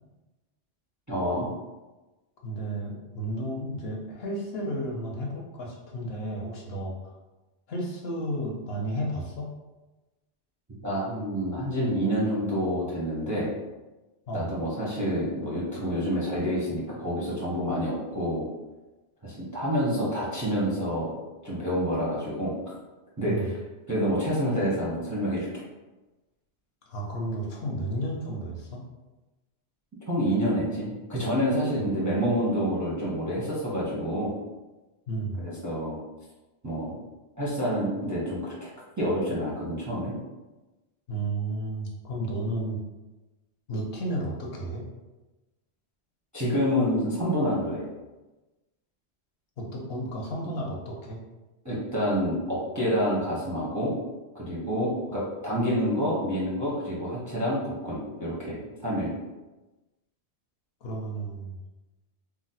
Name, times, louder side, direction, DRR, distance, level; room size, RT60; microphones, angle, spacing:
voice 1, 1.1-1.5 10.8-13.5 14.3-18.5 19.2-21.1 21.4-22.6 23.2-23.3 23.9-25.6 30.1-34.3 35.4-36.0 36.6-37.0 37.4-38.7 39.0-40.1 46.3-47.9 51.6-53.9 54.3-59.1, equal, 25° right, -7 dB, 0.4 m, -28 dB
voice 2, 2.4-7.1 7.7-9.5 14.3-14.5 23.3-23.4 26.9-28.8 35.1-35.4 41.1-42.8 43.7-44.8 49.6-51.2 55.1-55.2 60.8-61.6, right 1 dB, 65° left, -1 dB, 0.8 m, -32 dB
2.5 x 2.0 x 3.9 m, 1.1 s
omnidirectional pair, 1.2 m